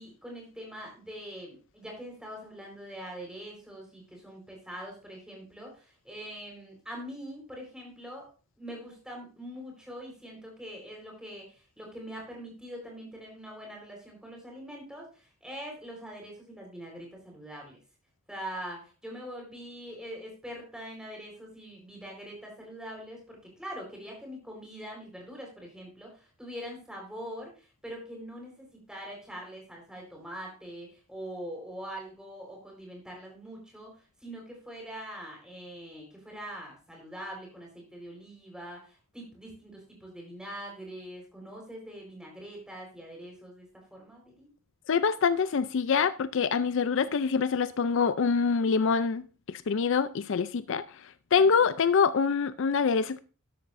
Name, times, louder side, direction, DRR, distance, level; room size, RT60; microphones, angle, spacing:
voice 1, 0.0-8.3 8.6-17.8 18.3-44.5 46.8-47.2 51.4-51.7, equal, 5° right, 4.2 m, -43 dB
voice 2, 44.9-49.2 49.5-50.8 51.3-53.2, left 5 dB, 60° left, 0.4 m, -25 dB
13.0 x 11.0 x 2.6 m
head